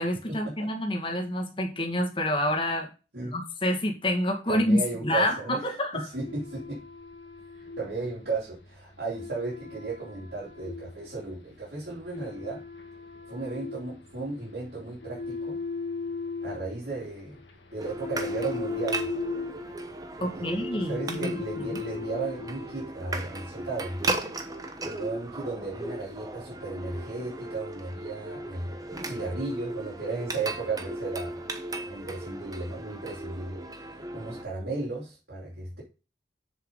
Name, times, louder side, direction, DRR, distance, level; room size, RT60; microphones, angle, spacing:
voice 1, 0.0-2.9 3.2-6.0 20.2-21.3 21.7-21.8, left 1 dB, 30° left, 2 dB, 1.9 m, -28 dB
voice 2, 4.5-5.6 5.9-6.8 7.5-12.6 13.3-15.6 16.4-17.4 17.7-19.1 20.2-24.2 24.8-28.8 29.0-31.5 31.9-35.8, right 3 dB, 70° right, -8 dB, 3.6 m, -35 dB
sound 1, 6.1-22.8, left 4 dB, 90° left, 1.8 m, -39 dB
sound 2, 17.8-34.5, right 2 dB, 20° right, 1.0 m, -36 dB
7.4 x 6.8 x 3.9 m, 0.32 s
head